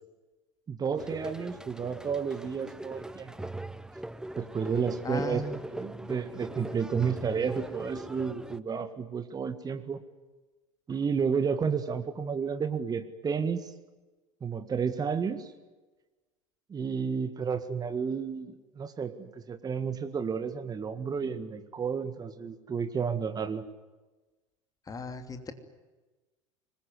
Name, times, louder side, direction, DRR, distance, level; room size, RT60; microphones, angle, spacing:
voice 1, 0.7-3.5 4.4-10.0 10.9-13.7 14.4-15.5 16.7-23.7, right 6 dB, 25° right, 10 dB, 1.8 m, -31 dB
sound 1, 1.0-8.6, right 1 dB, 5° right, 0.8 m, -41 dB
voice 2, 5.0-5.6 24.9-25.5, left 4 dB, 20° left, 8 dB, 3.0 m, -36 dB
24.5 x 21.5 x 9.6 m, 1.2 s
figure-of-eight pair, 75°, 17 cm